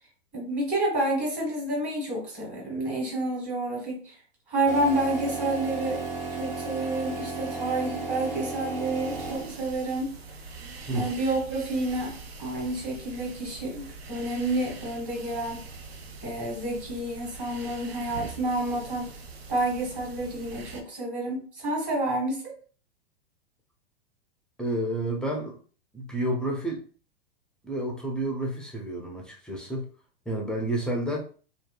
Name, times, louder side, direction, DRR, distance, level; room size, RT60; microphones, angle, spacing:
voice 1, 0.3-4.2 4.5-6.0 6.3-10.1 10.9-15.6 16.2-19.1 19.5-22.5, right 2 dB, 25° right, -3 dB, 1.4 m, -29 dB
sound 1, 4.6-9.8, right 3 dB, 50° right, 1.2 m, -34 dB
sound 2, 8.8-20.8, right 4 dB, 80° right, 0.5 m, -43 dB
voice 2, 24.6-25.6 25.9-26.8 27.6-29.9 30.3-31.2, right 1 dB, 5° left, -1 dB, 0.4 m, -30 dB
2.6 x 2.3 x 2.2 m, 0.40 s
hypercardioid pair, 100°, 31 cm